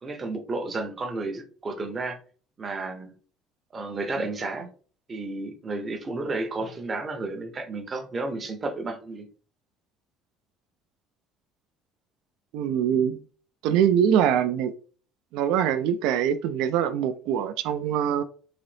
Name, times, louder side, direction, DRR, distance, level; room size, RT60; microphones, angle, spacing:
voice 1, 0.0-2.2 2.6-3.1 3.7-4.7 5.1-9.3, right 2 dB, 20° right, 0.6 m, -32 dB
voice 2, 12.5-13.2 13.6-14.7 15.3-18.2, right 9 dB, 70° right, 0.3 m, -23 dB
3.8 x 2.7 x 3.2 m
cardioid pair, 170°, 0 cm